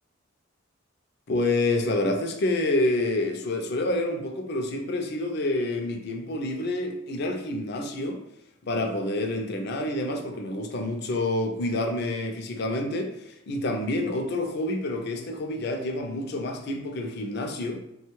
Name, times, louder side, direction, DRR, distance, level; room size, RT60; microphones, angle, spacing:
voice 1, 1.3-8.2 8.6-17.8, left 2 dB, 55° left, 4 dB, 0.4 m, -28 dB
3.0 x 2.2 x 3.0 m, 0.82 s
head